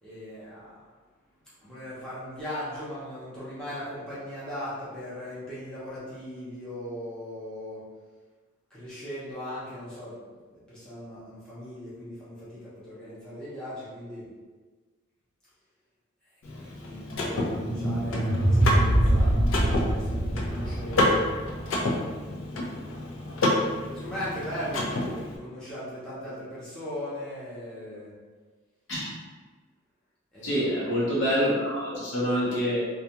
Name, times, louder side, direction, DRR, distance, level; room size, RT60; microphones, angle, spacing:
voice 1, 0.0-0.8 1.6-7.9 8.7-10.2 10.5-14.3 16.6-21.2 22.3-22.8 23.9-28.1 30.3-30.7, equal, 5° left, -12 dB, 0.7 m, -38 dB
Car / Mechanisms, 16.4-25.4, left 1 dB, 90° left, 0.5 m, -29 dB
sound 1, 17.2-22.3, right 1 dB, 50° right, 0.6 m, -25 dB
voice 2, 30.4-32.8, equal, 65° left, -8 dB, 0.9 m, -26 dB
2.4 x 2.3 x 2.8 m, 1.4 s
head